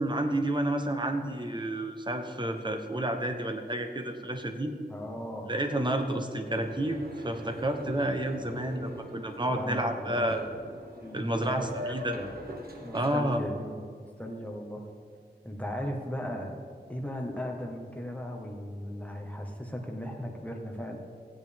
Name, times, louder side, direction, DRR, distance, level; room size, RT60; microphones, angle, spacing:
voice 1, 0.0-4.7 5.5-10.5 11.1-12.2 12.9-13.4, right 1 dB, 25° right, 5 dB, 1.1 m, -30 dB
voice 2, 4.9-5.5 9.5-10.5 11.0-12.3 12.8-14.8 15.4-16.6 16.9-21.0, equal, 10° left, 1 dB, 1.6 m, -37 dB
Boat Water vehicle, 6.6-13.2, equal, 60° right, 1.5 m, -43 dB
16.0 x 9.4 x 3.7 m, 2.1 s
wide cardioid pair, 70°, 18 cm